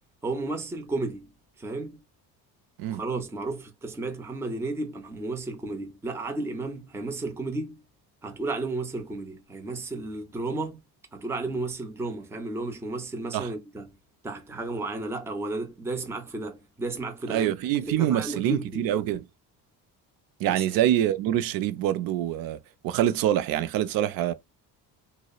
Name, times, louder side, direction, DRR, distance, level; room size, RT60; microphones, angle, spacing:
voice 1, 0.2-1.3 1.6-2.0 2.9-7.8 8.2-10.8 11.1-14.0 14.2-18.9 20.5-20.6, right 2 dB, 5° right, 0.5 m, -33 dB
voice 2, 17.3-19.2 20.4-22.6 22.8-24.3, right 11 dB, 60° right, 0.5 m, -25 dB
2.7 x 2.0 x 2.2 m
cardioid pair, 110°, 39 cm